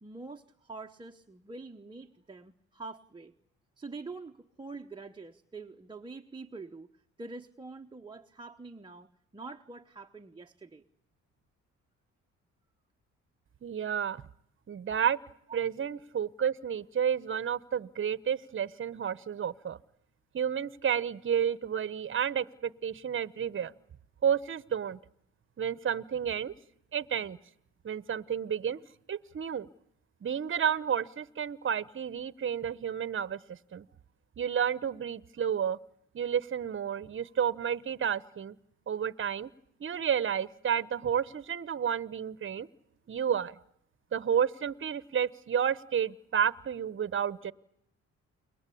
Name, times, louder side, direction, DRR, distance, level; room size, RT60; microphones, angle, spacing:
voice 1, 0.0-3.3 3.8-6.9 7.2-10.9, right 3 dB, 15° right, 4 dB, 1.1 m, -45 dB
voice 2, 13.6-14.2 14.7-15.2 15.5-19.8 20.3-23.7 24.2-25.0 25.6-26.5 26.9-27.4 27.8-28.8 29.1-29.7 30.2-33.8 34.4-35.8 36.1-38.5 38.9-39.5 39.8-42.7 43.1-43.6 44.1-47.5, right 8 dB, 40° right, 17 dB, 1.1 m, -31 dB
29.5 x 22.5 x 8.6 m, 0.77 s
cardioid pair, 90°, 30 cm